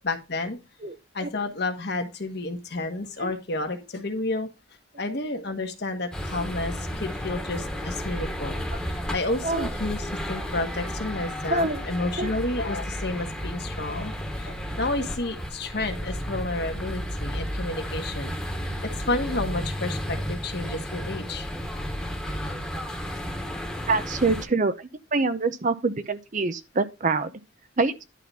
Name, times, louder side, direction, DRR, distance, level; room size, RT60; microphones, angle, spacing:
voice 1, 0.0-0.6 1.1-4.5 5.0-8.6 8.8-18.3 19.1-21.5, left 2 dB, 55° left, 1.5 m, -31 dB
sound 1, 6.1-24.4, equal, 5° left, 1.4 m, -32 dB
voice 2, 11.5-11.8 12.2-12.3 23.9-27.3 27.8-28.0, right 3 dB, 40° right, 0.7 m, -25 dB
11.0 x 3.8 x 5.5 m
head